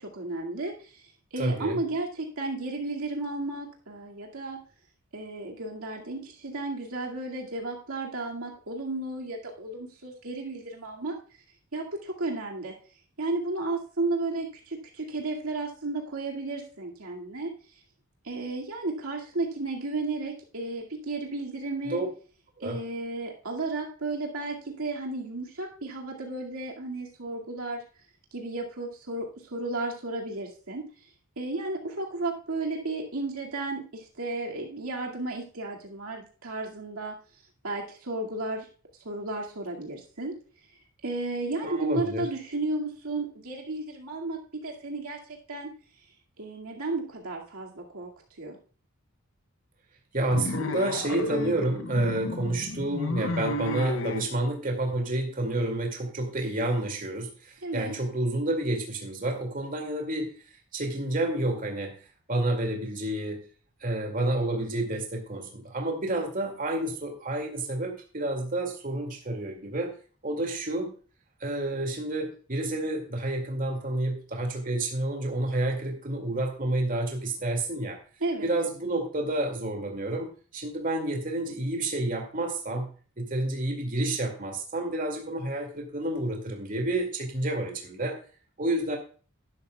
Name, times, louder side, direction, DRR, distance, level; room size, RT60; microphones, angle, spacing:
voice 1, 0.0-4.6 5.1-11.2 11.7-12.8 13.2-17.8 18.2-22.0 22.6-27.8 28.3-30.8 31.4-37.1 37.6-38.7 39.0-40.3 41.0-45.7 46.4-48.6 57.6-57.9 78.2-78.5, right 2 dB, 70° right, -1 dB, 2.2 m, -33 dB
voice 2, 1.4-1.8 21.9-22.1 22.6-22.8 41.6-42.3 50.1-60.3 60.7-62.0 62.3-63.4 63.8-69.9 70.2-70.9 71.4-78.0 78.4-82.9 83.2-88.2 88.6-89.0, right 1 dB, 40° right, 2 dB, 2.3 m, -29 dB
sound 1, 50.3-54.3, left 2 dB, 55° left, 0.8 m, -32 dB
12.0 x 11.5 x 2.3 m, 0.39 s
head